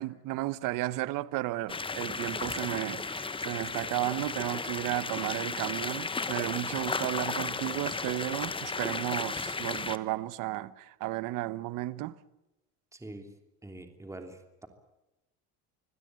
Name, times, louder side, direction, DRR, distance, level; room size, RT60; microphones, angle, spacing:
voice 1, 0.0-12.2, right 17 dB, 65° right, 1.1 m, -33 dB
sound 1, 1.7-10.0, left 4 dB, 15° left, 1.1 m, -34 dB
voice 2, 12.9-13.3 13.6-14.7, right 2 dB, 10° right, 3.1 m, -45 dB
25.5 x 16.5 x 9.1 m
supercardioid pair, 105°, 35 cm